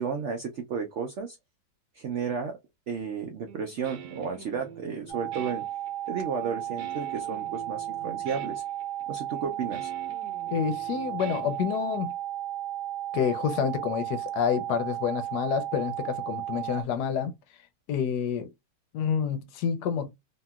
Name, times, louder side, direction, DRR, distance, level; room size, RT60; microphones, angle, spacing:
voice 1, 0.0-1.4 1.9-2.6 2.9-5.6 6.1-8.6 9.1-9.9, right 6 dB, 90° right, 0.6 m, -33 dB
Guitar, 3.5-12.1, right 8 dB, 75° right, 1.2 m, -46 dB
sound 1, 5.1-16.8, right 12 dB, ahead, 1.0 m, -34 dB
voice 2, 10.5-12.1 13.1-17.3 17.9-18.5 18.9-20.1, left 7 dB, 75° left, 1.1 m, -28 dB
2.9 x 2.7 x 2.2 m
omnidirectional pair, 1.9 m